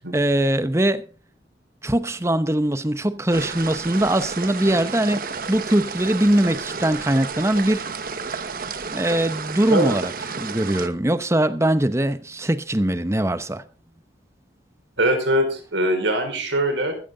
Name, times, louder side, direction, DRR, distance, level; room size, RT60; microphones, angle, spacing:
voice 1, 0.1-1.0 1.8-7.8 8.9-13.6, right 1 dB, 15° right, 0.9 m, -21 dB
sound 1, 3.3-10.9, right 5 dB, 50° right, 1.2 m, -31 dB
voice 2, 15.0-17.0, right 1 dB, 80° right, 4.9 m, -22 dB
14.5 x 13.0 x 3.9 m
head